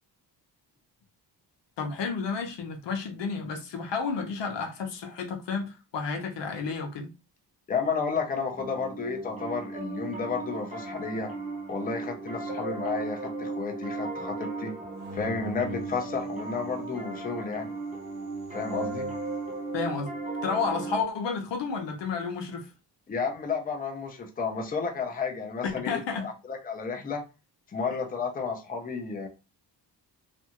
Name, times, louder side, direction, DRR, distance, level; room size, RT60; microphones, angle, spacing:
voice 1, 1.8-7.1 19.7-20.1 20.4-22.7 25.6-26.3, left 5 dB, 85° left, 0.8 m, -31 dB
voice 2, 7.7-11.3 11.7-14.7 15.1-17.7 18.5-19.1 23.1-27.2 27.7-29.3, left 5 dB, 20° left, 0.5 m, -32 dB
Piano, 8.6-21.0, right 3 dB, 15° right, 0.8 m, -36 dB
sound 1, 15.0-16.9 17.9-19.4, left 1 dB, 65° right, 0.7 m, -43 dB
2.5 x 2.3 x 2.8 m
wide cardioid pair, 150°, 42 cm